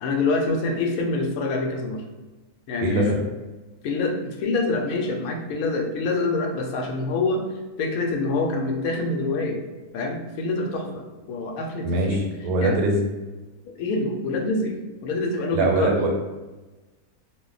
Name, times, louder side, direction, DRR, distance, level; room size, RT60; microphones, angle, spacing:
voice 1, 0.0-2.0 2.7-3.2 3.8-7.4 7.8-9.6 9.9-12.2 12.6-12.8 13.7-14.8 15.0-15.9, left 3 dB, 75° left, 2 dB, 1.0 m, -26 dB
voice 2, 2.8-3.2 11.8-13.0 15.5-16.2, right 1 dB, 90° right, 1 dB, 1.1 m, -22 dB
2.5 x 2.1 x 3.8 m, 1.2 s
omnidirectional pair, 1.6 m